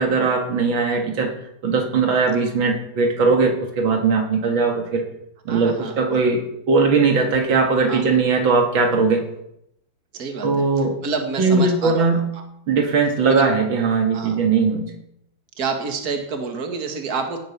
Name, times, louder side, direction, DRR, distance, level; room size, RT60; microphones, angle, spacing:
voice 1, 0.0-1.3 1.6-5.1 5.5-9.3 10.4-11.0 11.4-12.3 12.7-14.9, right 4 dB, 80° right, 3 dB, 2.6 m, -19 dB
voice 2, 5.5-6.0 7.9-8.0 10.1-10.6 11.0-12.1 12.3-12.4 13.3-13.5 14.1-14.4 15.6-17.4, right 4 dB, 50° right, 4 dB, 2.3 m, -28 dB
17.5 x 9.0 x 6.0 m, 0.78 s
omnidirectional pair, 2.1 m